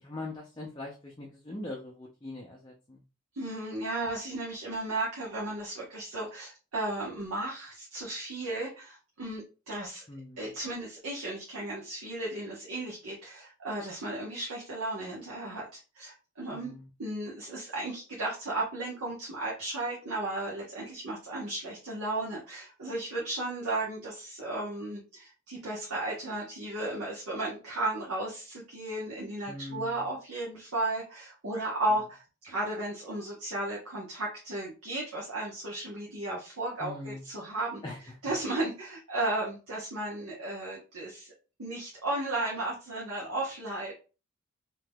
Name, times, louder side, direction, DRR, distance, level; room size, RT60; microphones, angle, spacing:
voice 1, 0.0-3.0 10.1-10.5 16.5-16.9 29.5-30.1 36.8-37.2 37.8-38.0, left 2 dB, 20° left, -2 dB, 0.5 m, -41 dB
voice 2, 3.3-10.0 10.4-16.7 17.0-37.8 38.2-41.3 41.6-43.9, right 2 dB, 85° right, -4 dB, 0.9 m, -34 dB
3.4 x 2.8 x 2.2 m, 0.33 s
head